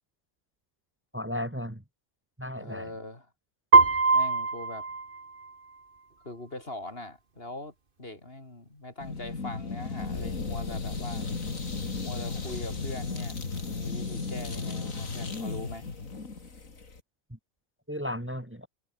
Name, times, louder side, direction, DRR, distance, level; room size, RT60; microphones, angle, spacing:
voice 1, 1.1-1.8 2.4-2.9 17.3-17.4 17.9-18.7, left 1 dB, 10° right, 2.6 m, -35 dB
voice 2, 2.6-3.3 4.1-4.9 6.2-11.3 12.0-15.9, left 2 dB, 45° left, 4.5 m, -42 dB
Piano, 3.7-5.8, right 4 dB, 40° right, 2.1 m, -22 dB
sound 1, 9.0-17.0, left 4 dB, 85° left, 3.2 m, -35 dB
omnidirectional pair, 1.4 m